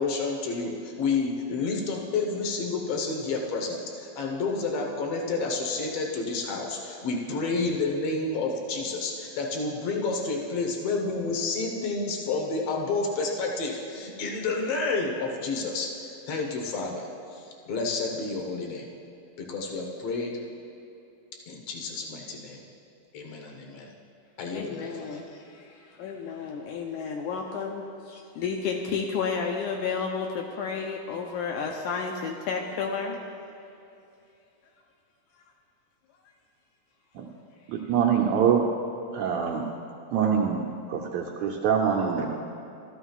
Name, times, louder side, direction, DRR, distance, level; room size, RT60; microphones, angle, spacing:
voice 1, 0.0-18.9 19.4-20.4 21.5-22.6 23.1-23.9 24.4-25.2, left 3 dB, 70° left, 1 dB, 1.4 m, -30 dB
voice 2, 24.5-33.2, left 5 dB, 85° left, 1 dB, 1.8 m, -32 dB
voice 3, 37.7-38.7 39.1-39.7 40.1-42.4, right 7 dB, 85° right, 0 dB, 1.6 m, -25 dB
14.5 x 13.5 x 2.4 m, 2.7 s
omnidirectional pair, 4.2 m